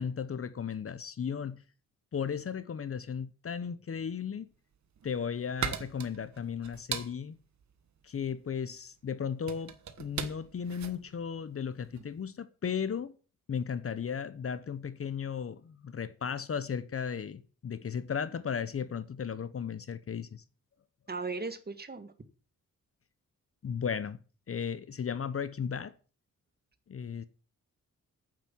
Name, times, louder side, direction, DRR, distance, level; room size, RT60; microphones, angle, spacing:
voice 1, 0.0-1.6 2.1-4.5 5.0-7.4 8.0-13.2 13.5-20.4 23.6-24.2 24.5-25.9 26.9-27.2, left 7 dB, 45° left, 0.9 m, -35 dB
sound 1, 4.7-12.2, right 7 dB, 60° right, 1.3 m, -40 dB
voice 2, 21.1-22.1, right 3 dB, 30° right, 1.6 m, -37 dB
9.2 x 7.7 x 7.4 m
cardioid pair, 90°, 32 cm